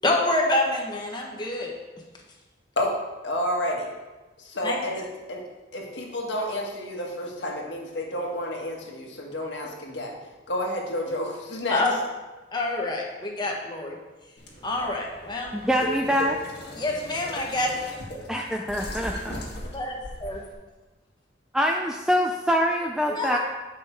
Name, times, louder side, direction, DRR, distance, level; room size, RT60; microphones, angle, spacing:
voice 1, 0.0-1.7 4.6-4.8 11.7-11.9 12.5-14.0 14.6-15.5 16.7-17.9 19.7-20.5 23.1-23.4, left 2 dB, 25° left, -1 dB, 1.3 m, -27 dB
voice 2, 3.2-3.9 4.4-5.0 5.3-5.4 5.7-10.2 10.5-11.8, left 1 dB, 75° left, 0 dB, 1.5 m, -30 dB
sound 1, 14.4-20.5, equal, 60° left, 1.7 m, -38 dB
voice 3, 15.5-16.4 18.3-19.4 21.5-23.4, equal, 5° right, 0 dB, 0.4 m, -24 dB
8.2 x 5.4 x 4.4 m, 1.2 s
head